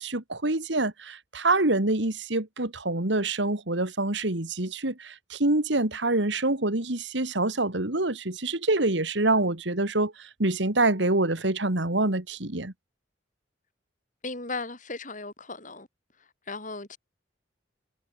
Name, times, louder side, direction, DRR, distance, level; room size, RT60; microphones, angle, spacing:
voice 1, 0.0-12.7, right 2 dB, 65° right, 2.3 m, -26 dB
voice 2, 14.2-15.9 16.2-17.0, left 3 dB, 40° left, 7.9 m, -37 dB
head